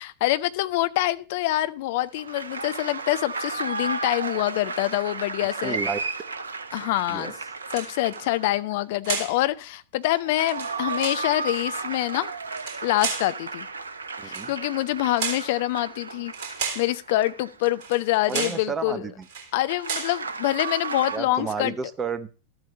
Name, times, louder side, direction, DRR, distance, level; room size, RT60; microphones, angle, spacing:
voice 1, 0.0-5.8 6.7-7.3 7.7-12.3 12.8-13.7 14.2-16.3 16.7-19.0 19.5-21.7, left 16 dB, 50° left, 13 dB, 0.7 m, -25 dB
sound 1, 2.2-8.7 10.0-18.4 19.6-21.2, right 4 dB, 75° right, 0.8 m, -34 dB
voice 2, 5.6-6.1 7.1-7.3 14.2-14.5 18.3-19.3 21.1-22.3, right 5 dB, 20° right, 11 dB, 1.2 m, -31 dB
Shotgun Rifle Magazine Clip Movement, 7.6-8.2 9.0-9.4 10.4-11.3 12.5-13.3 14.2-14.5 15.2-15.5 16.3-16.9 17.8-18.0 18.3-18.7 19.2-19.5 19.8-20.2, right 5 dB, 45° right, 3.5 m, -32 dB
13.0 x 8.0 x 5.4 m, 0.36 s
figure-of-eight pair, 90°, 0 cm